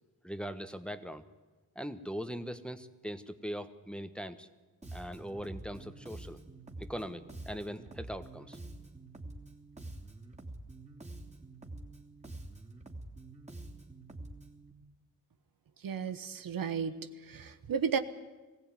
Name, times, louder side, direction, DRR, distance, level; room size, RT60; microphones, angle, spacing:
voice 1, 0.2-1.2 1.7-4.5 4.9-6.4 6.8-8.6, equal, 5° left, 9 dB, 1.3 m, -40 dB
Bass guitar, 4.8-14.7, right 2 dB, 20° right, 3.0 m, -47 dB
voice 2, 15.8-16.9 17.3-18.0, right 7 dB, 65° right, 10 dB, 1.2 m, -33 dB
20.5 x 15.5 x 9.7 m, 1.2 s
cardioid pair, 55°, 37 cm